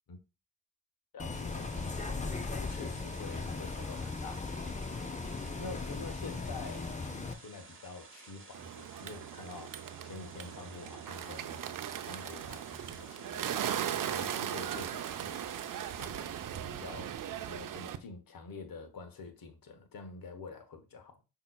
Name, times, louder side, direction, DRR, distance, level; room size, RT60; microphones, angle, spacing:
voice 1, 1.1-1.9 2.6-4.8 5.6-11.7 12.0-15.5 16.0-17.2 17.5-21.2, left 4 dB, 55° left, 1.1 m, -47 dB
Bus, 1.2-7.3, left 3 dB, 15° left, 0.6 m, -38 dB
sound 1, 1.3-16.1, right 4 dB, 30° right, 1.0 m, -54 dB
Bird, 8.5-18.0, right 10 dB, 50° right, 0.6 m, -38 dB
5.5 x 2.9 x 2.2 m
hypercardioid pair, 40°, 42 cm